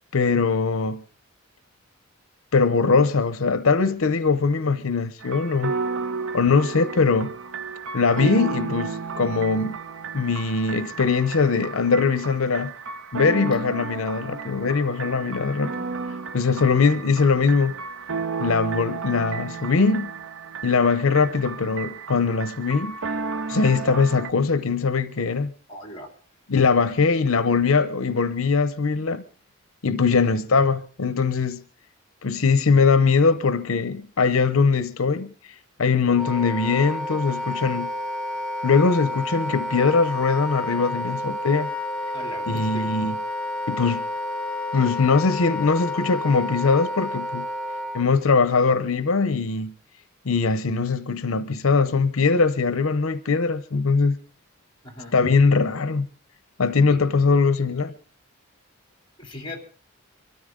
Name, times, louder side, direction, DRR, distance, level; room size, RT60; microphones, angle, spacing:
voice 1, 0.1-1.0 2.5-5.7 6.3-7.3 7.9-9.8 10.1-12.7 13.1-15.7 16.3-17.8 18.4-20.1 20.6-23.0 23.5-25.5 26.5-29.2 29.8-31.6 32.2-37.9 38.6-41.7 42.5-43.2 43.7-44.0 44.7-47.5 47.9-49.7 50.3-54.2 55.1-56.1 56.6-57.9, left 4 dB, 80° left, 0.7 m, -21 dB
sound 1, 5.2-24.3, right 4 dB, 70° right, 0.7 m, -33 dB
voice 2, 25.7-26.1 30.2-30.4 42.1-42.9 54.8-55.2 56.7-57.0 59.2-59.6, equal, 25° left, 3.1 m, -38 dB
Wind instrument woodwind instrument, 36.1-48.0, left 1 dB, 5° left, 1.3 m, -30 dB
24.0 x 13.5 x 3.8 m
head